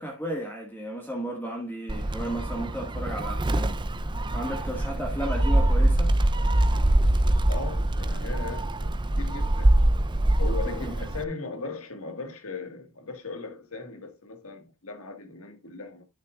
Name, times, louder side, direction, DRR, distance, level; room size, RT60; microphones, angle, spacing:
voice 1, 0.0-3.7 4.3-6.2 10.7-10.9, right 1 dB, 10° left, 1.8 m, -34 dB
Gull seagull, 1.9-11.2, right 1 dB, 20° right, 0.6 m, -24 dB
voice 2, 7.5-9.9 10.4-16.1, left 3 dB, 70° left, 1.8 m, -38 dB
12.0 x 6.7 x 2.4 m
head